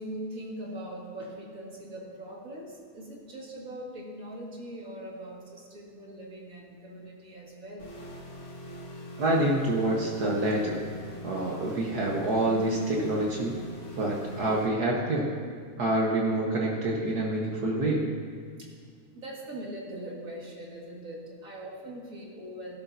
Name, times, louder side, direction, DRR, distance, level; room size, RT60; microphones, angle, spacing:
voice 1, 0.0-8.0 18.6-18.8 19.1-22.8, right 1 dB, 30° right, -3 dB, 1.9 m, -41 dB
sound 1, 7.8-14.7, equal, 55° left, 4.4 m, -43 dB
voice 2, 9.2-10.8 11.2-13.5 14.0-15.3 15.8-18.0, right 1 dB, 90° right, -2 dB, 0.8 m, -27 dB
18.0 x 12.5 x 2.7 m, 2.1 s
omnidirectional pair, 3.6 m